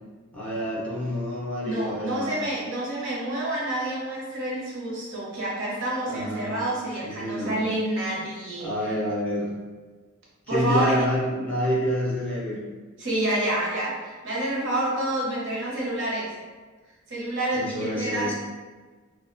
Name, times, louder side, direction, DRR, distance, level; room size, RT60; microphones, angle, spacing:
voice 1, 0.3-2.4 6.1-6.6 7.0-7.6 8.6-9.5 10.5-12.6 17.5-18.3, equal, 5° left, -7 dB, 0.5 m, -28 dB
voice 2, 1.6-9.0 10.5-10.9 13.0-16.3 17.1-18.3, right 1 dB, 65° right, -5 dB, 0.8 m, -28 dB
2.3 x 2.1 x 2.5 m, 1.3 s
head